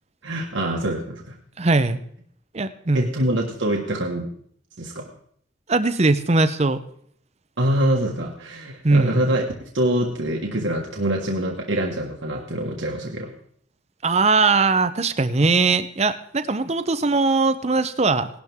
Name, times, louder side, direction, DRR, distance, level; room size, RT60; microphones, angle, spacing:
voice 1, 0.2-1.4 2.9-4.3 4.8-5.1 7.6-13.3, right 1 dB, 85° right, 0 dB, 1.6 m, -25 dB
voice 2, 1.6-2.0 2.5-3.1 5.7-6.8 8.8-9.2 14.0-18.3, right 3 dB, 35° right, 11 dB, 0.7 m, -20 dB
18.0 x 12.0 x 3.6 m, 0.63 s
head